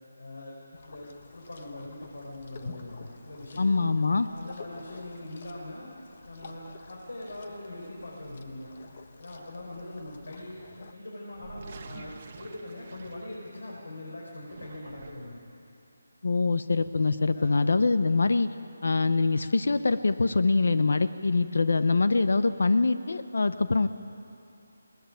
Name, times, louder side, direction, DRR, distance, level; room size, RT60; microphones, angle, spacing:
voice 1, 0.2-0.6 0.9-3.8 4.2-5.9 6.3-8.7 9.2-10.6 10.9-15.4 17.3-17.5, left 1 dB, 90° left, -4 dB, 5.8 m, -42 dB
sound 1, 0.7-10.9, left 4 dB, 35° left, 1.2 m, -50 dB
voice 2, 3.6-4.3 16.2-18.5 18.8-23.9, left 3 dB, 65° left, 11 dB, 0.9 m, -24 dB
sound 2, 11.3-13.9 14.3-15.5, right 4 dB, 30° right, 1.2 m, -48 dB
20.5 x 20.0 x 9.2 m, 2.7 s
hypercardioid pair, 175°, 0 cm